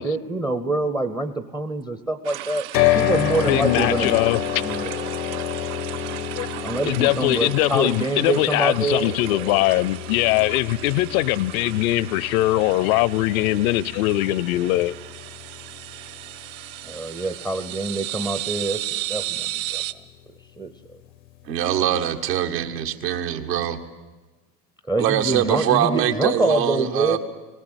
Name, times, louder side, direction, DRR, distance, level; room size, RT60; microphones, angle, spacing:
voice 1, 0.0-2.6 2.9-4.2 4.6-5.1 6.6-9.5 16.8-19.8 20.6-20.7 24.9-27.2, right 2 dB, 5° right, 0.5 m, -25 dB
sound 1, 2.2-19.9, right 14 dB, 55° right, 0.8 m, -35 dB
sound 2, 2.7-16.9, left 11 dB, 90° left, 1.0 m, -29 dB
voice 2, 3.5-4.4 6.4-6.5 6.8-14.9, left 16 dB, 60° left, 0.7 m, -21 dB
voice 3, 21.5-23.8 25.0-27.2, right 10 dB, 75° right, 1.8 m, -23 dB
18.5 x 18.0 x 8.0 m
hypercardioid pair, 110°, 49 cm